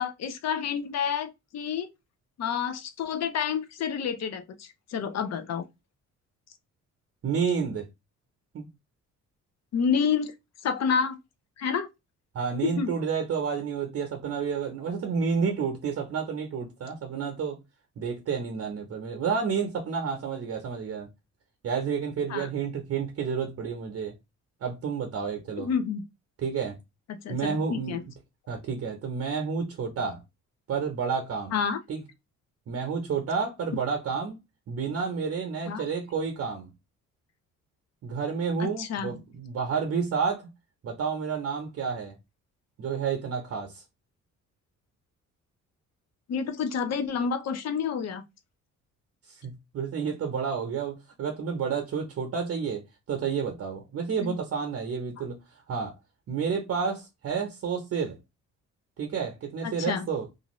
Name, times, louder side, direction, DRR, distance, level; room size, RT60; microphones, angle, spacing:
voice 1, 0.0-1.9 2.4-5.6 9.7-10.3 10.6-11.2 11.6-11.9 12.6-12.9 22.3-22.5 25.6-26.0 27.1-28.0 31.5-31.8 35.7-35.8 38.6-39.1 46.3-48.2 54.2-54.4 59.6-60.1, left 7 dB, 60° left, 0.6 m, -29 dB
voice 2, 7.2-7.9 8.5-8.7 12.3-17.6 18.0-21.1 21.6-24.1 24.6-25.7 26.4-26.8 27.3-28.0 28.5-30.2 30.7-31.6 31.9-32.0 32.7-34.4 34.7-36.7 38.0-40.5 40.8-42.1 42.8-43.8 49.3-52.8 53.1-55.4 55.7-56.0 56.3-58.2 59.0-60.3, right 6 dB, 55° right, 0.8 m, -30 dB
2.5 x 2.5 x 3.0 m
cardioid pair, 90°, 30 cm